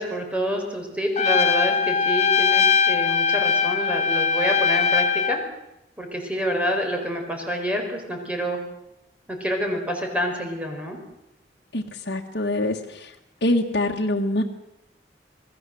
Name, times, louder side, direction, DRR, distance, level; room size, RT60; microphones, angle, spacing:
voice 1, 0.0-5.4 6.0-8.6 9.3-11.0, equal, 5° right, 2 dB, 4.7 m, -27 dB
Trumpet, 1.2-5.4, left 6 dB, 40° left, 1.1 m, -21 dB
voice 2, 11.7-13.1 13.4-14.4, left 1 dB, 65° left, 0 dB, 1.7 m, -24 dB
28.5 x 19.0 x 7.8 m, 0.88 s
head